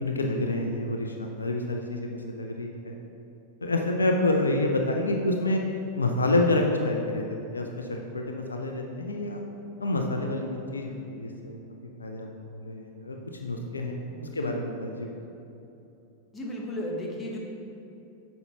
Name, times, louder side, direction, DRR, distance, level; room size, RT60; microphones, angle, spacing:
voice 1, 0.0-2.9 3.6-5.6 5.9-7.2 7.5-7.9 8.1-9.4 9.8-11.6 12.0-15.1, left 2 dB, 75° left, 2 dB, 0.5 m, -28 dB
voice 2, 14.1-14.6 16.3-17.4, left 1 dB, 15° left, -2 dB, 1.1 m, -35 dB
7.9 x 5.3 x 2.9 m, 2.9 s
figure-of-eight pair, 90°, 0 cm